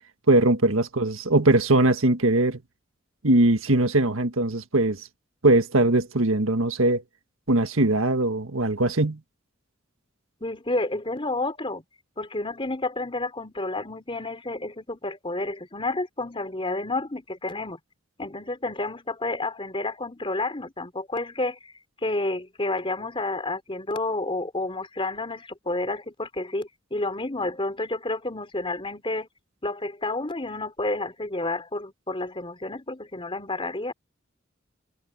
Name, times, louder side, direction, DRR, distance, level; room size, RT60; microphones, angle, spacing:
voice 1, 0.3-2.6 3.2-5.1 5.4-7.0 7.5-9.2, right 2 dB, 90° right, 1.7 m, -21 dB
voice 2, 10.4-11.8 12.2-17.8 18.2-21.7 22.0-29.3 29.6-33.9, left 2 dB, 25° left, 3.7 m, -30 dB
head